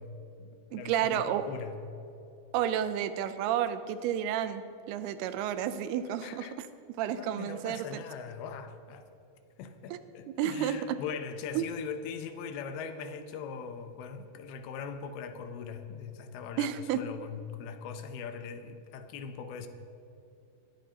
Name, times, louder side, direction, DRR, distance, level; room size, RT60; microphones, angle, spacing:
voice 1, 0.0-1.8 6.2-6.5 7.1-9.1 9.6-19.7, left 6 dB, 80° left, 2.7 m, -41 dB
voice 2, 0.7-1.4 2.5-6.7 7.0-8.0 9.9-10.0 10.4-10.8 11.6-11.7 16.6-17.0, right 10 dB, 85° right, 2.6 m, -31 dB
19.0 x 13.0 x 2.9 m
omnidirectional pair, 4.5 m